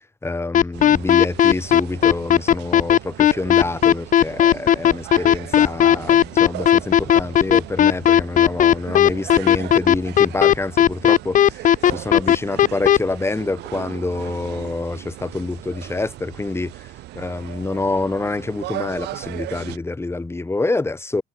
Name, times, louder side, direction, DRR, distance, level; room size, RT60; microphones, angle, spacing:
voice 1, 0.2-21.2, left 2 dB, 15° left, 6.0 m, -27 dB
sound 1, 0.5-13.0, left 10 dB, 50° left, 1.2 m, -14 dB
sound 2, 0.7-19.8, right 17 dB, 80° right, 4.8 m, -37 dB
cardioid pair, 110°, 17 cm